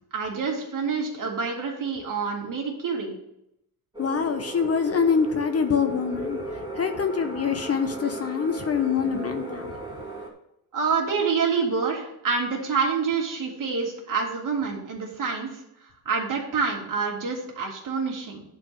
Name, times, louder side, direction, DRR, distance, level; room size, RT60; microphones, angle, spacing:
voice 1, 0.1-3.1 9.0-9.2 10.7-18.4, right 5 dB, 50° right, -1 dB, 2.6 m, -27 dB
sound 1, 3.9-10.3, right 2 dB, 10° right, 2.5 m, -36 dB
voice 2, 4.0-6.4 6.7-9.7, left 6 dB, 35° left, 7 dB, 0.8 m, -25 dB
10.5 x 4.6 x 6.9 m, 0.79 s
cardioid pair, 135°, 41 cm